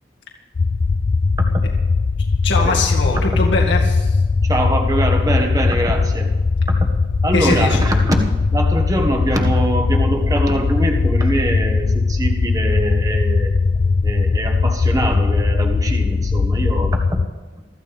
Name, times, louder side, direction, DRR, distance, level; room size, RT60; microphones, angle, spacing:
sound 1, 0.6-17.3, left 4 dB, 50° left, 0.4 m, -19 dB
voice 1, 2.4-4.2 7.3-7.8, left 3 dB, 90° left, -1 dB, 2.1 m, -21 dB
voice 2, 4.4-6.3 6.7-6.9 7.2-13.5 14.0-17.2, right 1 dB, 20° right, 3 dB, 1.4 m, -23 dB
24.0 x 14.5 x 3.5 m, 1.3 s
head